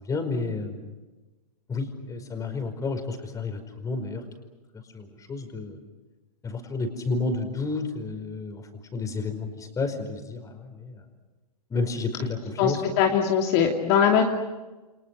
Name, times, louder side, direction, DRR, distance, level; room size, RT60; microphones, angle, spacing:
voice 1, 0.1-0.9 1.7-4.2 4.9-5.8 6.4-11.0 11.7-12.8, left 3 dB, 15° left, 7 dB, 5.0 m, -31 dB
voice 2, 12.6-14.2, left 8 dB, 45° left, 1 dB, 2.9 m, -21 dB
30.0 x 28.5 x 6.6 m, 1.2 s
hypercardioid pair, 120°, 20 cm